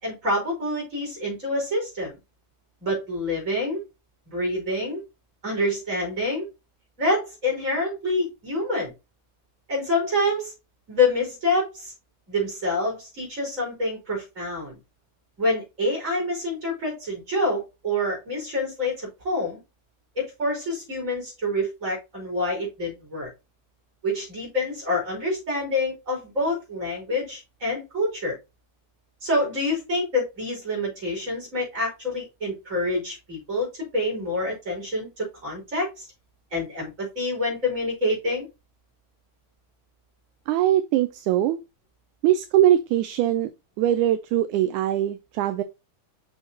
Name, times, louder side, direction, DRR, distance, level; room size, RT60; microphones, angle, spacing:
voice 1, 0.0-2.2 2.8-3.8 4.2-5.0 5.4-6.5 7.0-8.9 9.7-10.5 10.9-11.9 12.3-14.8 15.4-19.6 20.2-23.3 24.0-28.4 29.2-36.1 36.5-38.5, left 1 dB, 25° right, 4.9 m, -27 dB
voice 2, 40.5-41.6 42.2-43.5 43.8-45.6, right 12 dB, 80° right, 2.0 m, -21 dB
6.6 x 6.2 x 2.8 m
omnidirectional pair, 3.6 m